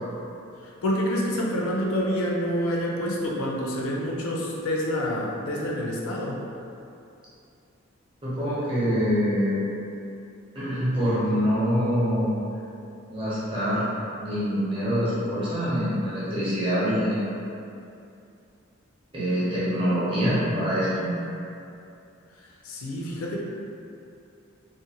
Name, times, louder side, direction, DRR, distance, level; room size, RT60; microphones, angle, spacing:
voice 1, 0.6-6.4 22.6-23.4, equal, 85° left, -3 dB, 0.4 m, -27 dB
voice 2, 8.2-9.6 10.5-12.3 13.1-13.9 14.2-17.3 19.1-21.1, equal, 25° right, -11 dB, 0.7 m, -25 dB
2.5 x 2.1 x 2.9 m, 2.6 s
head